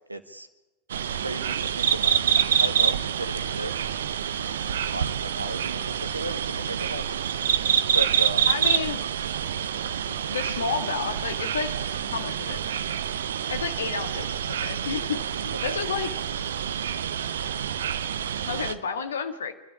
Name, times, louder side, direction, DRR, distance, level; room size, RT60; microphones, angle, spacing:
voice 1, 0.1-0.5 1.1-2.2 2.6-4.0 4.7-7.2 7.9-8.5 15.7-15.8, right 2 dB, 85° right, 11 dB, 1.5 m, -35 dB
sound 1, 0.9-18.7, right 8 dB, 65° right, 0.9 m, -27 dB
voice 2, 8.5-9.0 10.1-11.7 12.1-12.6 13.5-16.1 18.5-19.5, left 6 dB, 65° left, 8 dB, 1.8 m, -31 dB
27.0 x 13.0 x 10.0 m, 1.1 s
figure-of-eight pair, 90°, 0 cm